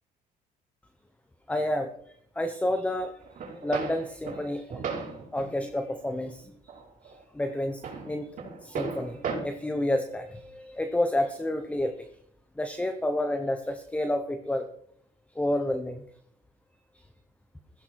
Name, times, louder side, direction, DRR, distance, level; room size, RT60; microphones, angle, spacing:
voice 1, 1.5-1.9 2.3-3.1 3.5-4.8 5.3-6.6 7.0-8.3 8.6-12.1 12.6-14.7 15.3-16.0, left 1 dB, 10° left, 7 dB, 1.1 m, -30 dB
sound 1, 3.2-5.5 6.0-6.2 6.7-7.2 7.4-9.4, right 5 dB, 50° right, 5.2 m, -36 dB
15.0 x 15.0 x 4.7 m, 0.68 s
cardioid pair, 110°, 17 cm